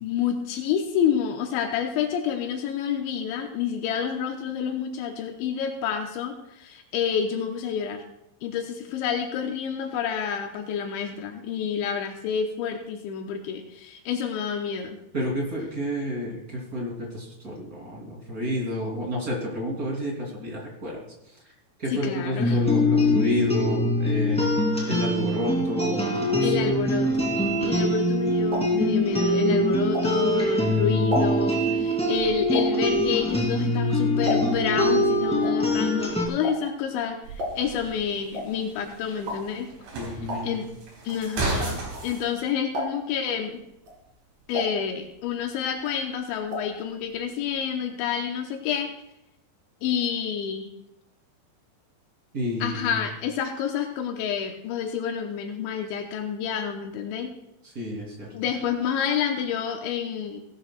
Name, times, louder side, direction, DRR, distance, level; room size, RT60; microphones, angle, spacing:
voice 1, 0.0-8.0 8.4-15.0 21.9-22.6 26.4-27.4 27.6-39.7 40.4-40.7 41.0-43.6 44.5-48.9 49.8-50.7 52.6-57.3 58.3-60.4, left 7 dB, 85° left, 3 dB, 3.2 m, -29 dB
voice 2, 15.1-21.4 21.8-24.5 24.9-26.7 39.9-40.6 52.3-52.9 57.6-58.3, equal, 25° right, -1 dB, 2.6 m, -30 dB
sound 1, 22.4-36.3, left 1 dB, 5° left, 1.0 m, -23 dB
sound 2, 28.0-30.5 30.9-34.8 35.1-42.4 42.7-43.2 43.7-45.4 45.7-46.8 47.1-47.2 47.4-47.5, left 1 dB, 55° right, 3.6 m, -34 dB
sound 3, 37.2-42.2, right 2 dB, 75° right, 6.0 m, -34 dB
17.5 x 12.5 x 2.3 m, 0.82 s
omnidirectional pair, 5.3 m